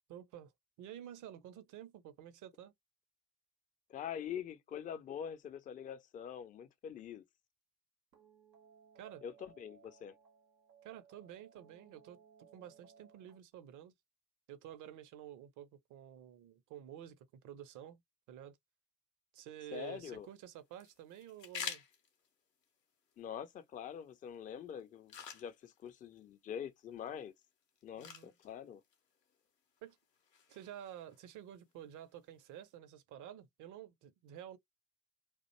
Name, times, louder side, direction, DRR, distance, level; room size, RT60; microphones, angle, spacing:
voice 1, 0.1-0.5 0.8-2.7 9.0-9.2 10.8-12.2 12.5-13.9 14.5-18.0 18.3-18.6 19.3-21.8 28.0-28.3 29.8-30.0 30.5-34.6, right 11 dB, 40° right, 0.5 m, -51 dB
voice 2, 3.9-7.2 9.2-10.1 19.7-20.3 23.2-27.3 27.8-28.8, left 8 dB, 20° left, 0.3 m, -44 dB
sound 1, 8.1-13.4, right 7 dB, 85° right, 0.6 m, -63 dB
sound 2, 19.7-32.7, left 6 dB, 85° left, 0.7 m, -52 dB
2.5 x 2.1 x 2.8 m
figure-of-eight pair, 50°, 48 cm